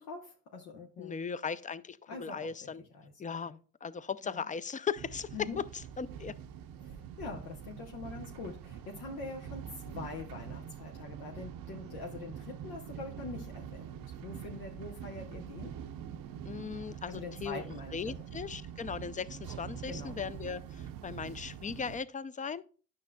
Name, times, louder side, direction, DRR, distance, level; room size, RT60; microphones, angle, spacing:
voice 1, 0.0-1.3 2.1-3.6 4.2-4.5 5.3-5.6 6.8-15.8 17.1-18.3 19.9-20.2, left 3 dB, 90° left, 1.0 m, -44 dB
voice 2, 1.0-2.8 3.2-3.5 3.8-5.5 6.0-6.3 16.4-17.6 17.9-22.7, left 6 dB, 20° left, 0.4 m, -38 dB
sound 1, 5.0-22.0, right 9 dB, 70° right, 0.6 m, -45 dB
9.6 x 6.2 x 2.2 m
supercardioid pair, 55°, 36 cm